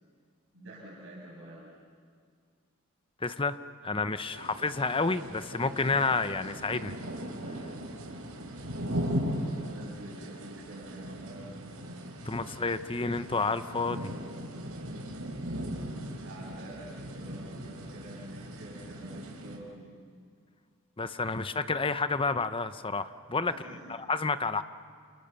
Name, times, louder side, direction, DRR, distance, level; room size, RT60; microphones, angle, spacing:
voice 1, 0.5-1.7 9.7-11.6 16.1-19.8 23.4-24.0, right 1 dB, 60° right, -4 dB, 7.5 m, -47 dB
voice 2, 3.2-3.6 3.8-7.0 12.3-14.1 21.0-23.5 23.9-24.6, left 4 dB, 25° left, 12 dB, 0.9 m, -30 dB
sound 1, 4.3-19.6, equal, 90° right, 4.1 m, -38 dB
29.0 x 28.0 x 7.0 m, 2.1 s
head